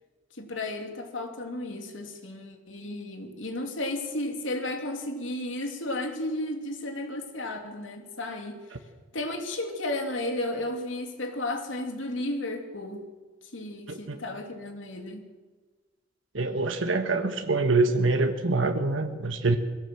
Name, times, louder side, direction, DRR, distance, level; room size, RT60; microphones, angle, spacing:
voice 1, 0.3-8.9 9.1-13.1 13.4-15.3, left 1 dB, 90° left, 4 dB, 2.8 m, -33 dB
voice 2, 16.3-19.6, right 3 dB, 90° right, 5 dB, 1.4 m, -25 dB
22.0 x 16.5 x 7.7 m, 1.4 s
head